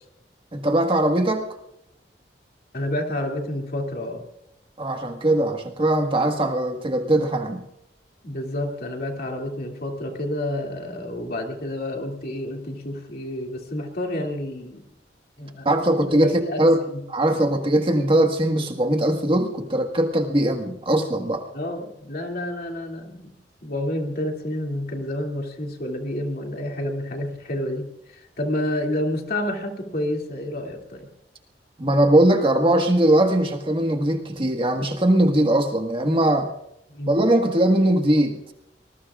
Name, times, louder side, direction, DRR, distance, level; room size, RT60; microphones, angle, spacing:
voice 1, 0.5-1.5 4.8-7.6 15.6-16.8 17.1-21.4 31.8-36.5 37.1-38.5, right 1 dB, 30° right, 3 dB, 1.6 m, -20 dB
voice 2, 2.7-4.2 8.2-14.8 15.4-15.7 16.1-17.0 17.3-17.4 21.5-23.3 23.6-27.9 28.1-31.1 36.9-37.1, left 1 dB, 60° left, 1 dB, 2.6 m, -29 dB
25.0 x 20.5 x 2.5 m, 0.81 s
head